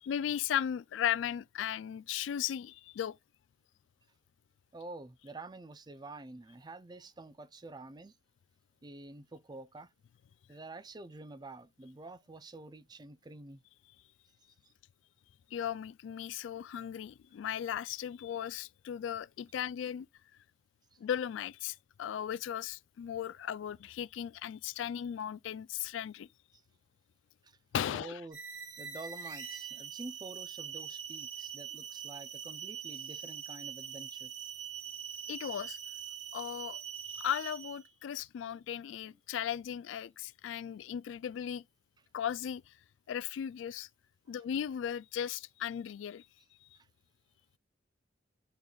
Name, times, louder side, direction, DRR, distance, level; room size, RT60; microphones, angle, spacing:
voice 1, 0.0-3.2 15.5-20.1 21.0-26.3 27.7-28.2 35.3-35.8 36.3-36.8 37.2-41.6 42.1-42.7 43.1-43.9 44.3-46.2, left 9 dB, 80° left, 0.3 m, -36 dB
voice 2, 4.7-8.2 8.8-9.9 10.5-13.6 14.6-14.7 20.9-21.0 26.5-26.6 27.4-27.6 27.9-28.4 28.8-34.3 39.0-39.2 44.3-44.4 46.7-46.9, right 2 dB, 20° right, 0.5 m, -48 dB
sound 1, 28.3-37.9, right 8 dB, 85° right, 1.8 m, -43 dB
11.0 x 4.0 x 2.3 m
head